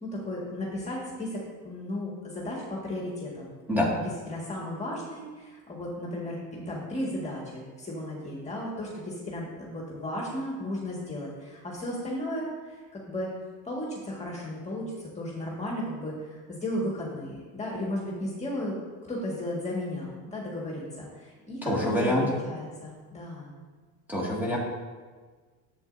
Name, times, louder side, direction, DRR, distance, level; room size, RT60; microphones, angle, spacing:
voice 1, 0.0-3.5 4.3-13.3 13.6-18.8 19.1-23.5, left 1 dB, 20° left, -4 dB, 1.8 m, -35 dB
voice 2, 21.6-22.3 24.1-24.6, left 1 dB, 5° right, -4 dB, 2.0 m, -26 dB
10.5 x 7.8 x 2.7 m, 1.4 s
cardioid pair, 115°, 38 cm